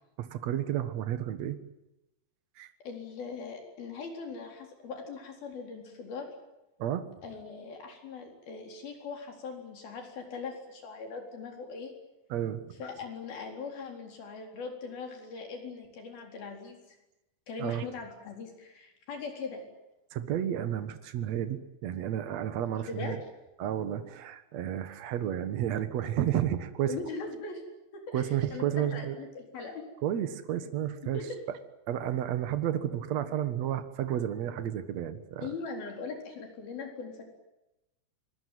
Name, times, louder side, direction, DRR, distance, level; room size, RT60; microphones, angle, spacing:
voice 1, 0.2-1.6 2.6-2.7 6.8-7.0 12.3-12.8 17.6-17.9 20.1-23.2 23.6-26.9 28.1-29.2 30.0-31.2 31.9-35.5, right 10 dB, 85° right, 11 dB, 1.5 m, -31 dB
voice 2, 2.9-6.3 7.2-11.9 12.8-16.8 17.5-19.6 22.9-23.2 26.9-27.6 27.9-29.9 31.0-31.4 35.4-37.2, left 4 dB, 55° left, 3 dB, 5.8 m, -40 dB
25.5 x 20.0 x 9.4 m, 0.92 s
omnidirectional pair, 5.3 m